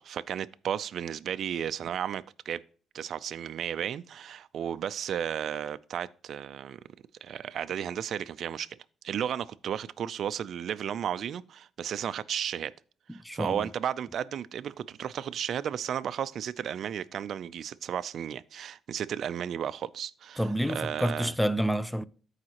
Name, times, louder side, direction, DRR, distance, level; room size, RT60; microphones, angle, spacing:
voice 1, 0.0-2.6 2.9-6.8 7.2-8.8 9.0-12.7 13.1-21.3, right 9 dB, 65° right, 0.4 m, -34 dB
voice 2, 13.2-13.7 20.4-22.0, equal, ahead, 0.6 m, -28 dB
14.5 x 4.9 x 2.9 m
cardioid pair, 90°, 0 cm